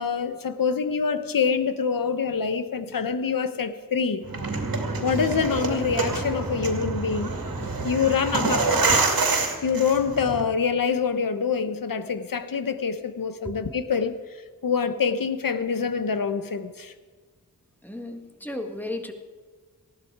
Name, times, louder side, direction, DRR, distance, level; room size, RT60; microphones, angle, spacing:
voice 1, 0.0-4.2 5.0-7.3 7.8-8.8 9.6-14.2 14.6-16.9, left 6 dB, 70° left, 10 dB, 1.1 m, -25 dB
sound 1, 4.2-10.4, right 3 dB, 75° right, 2.4 m, -26 dB
voice 2, 17.8-19.1, left 1 dB, 5° left, 4 dB, 1.8 m, -34 dB
19.0 x 15.0 x 4.8 m, 1.5 s
wide cardioid pair, 100°, 35 cm